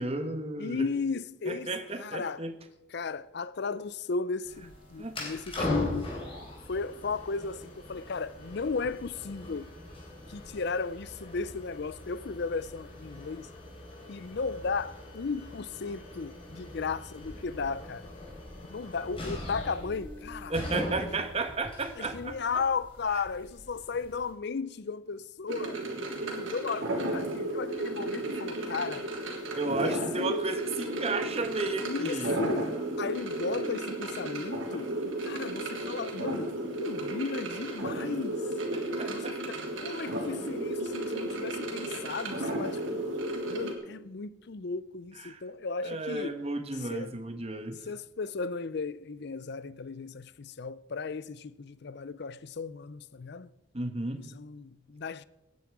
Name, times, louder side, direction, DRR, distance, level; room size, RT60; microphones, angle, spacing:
voice 1, 0.0-0.9 1.5-2.5 5.0-5.1 5.6-5.7 20.5-22.6 23.1-23.2 29.5-32.4 38.7-39.3 45.2-45.4 45.8-47.8 53.7-54.3, right 3 dB, 30° right, 1.3 m, -33 dB
voice 2, 0.6-2.4 2.9-6.1 6.7-9.7 10.3-13.5 14.1-18.1 18.7-20.5 21.0-21.1 22.0-25.8 26.2-29.1 29.8-30.4 31.8-32.7 33.0-34.9 35.2-36.5 36.8-38.4 39.1-43.0 43.5-46.4 46.9-47.1 47.8-53.5 54.2-55.2, left 4 dB, 55° left, 0.5 m, -35 dB
sound 1, 4.4-24.3, left 1 dB, 25° left, 3.8 m, -41 dB
sound 2, 25.5-43.7, right 1 dB, 70° right, 3.2 m, -34 dB
17.5 x 9.7 x 4.7 m
head